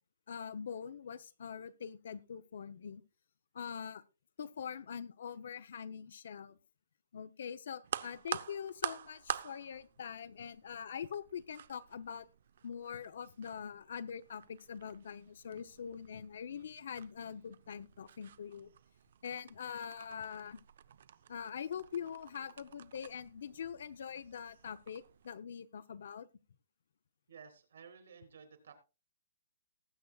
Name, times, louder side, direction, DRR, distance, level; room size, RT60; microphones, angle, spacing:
voice 1, 0.3-3.0 3.5-4.0 4.4-6.6 7.1-12.3 12.6-18.7 19.2-20.6 21.3-26.3, left 7 dB, 60° left, 12 dB, 0.7 m, -43 dB
sound 1, 7.8-25.3, right 9 dB, 50° right, 0.6 m, -47 dB
voice 2, 27.3-28.7, right 6 dB, 70° right, 6 dB, 3.5 m, -54 dB
19.5 x 8.1 x 2.3 m, 0.30 s
hypercardioid pair, 170°, 0 cm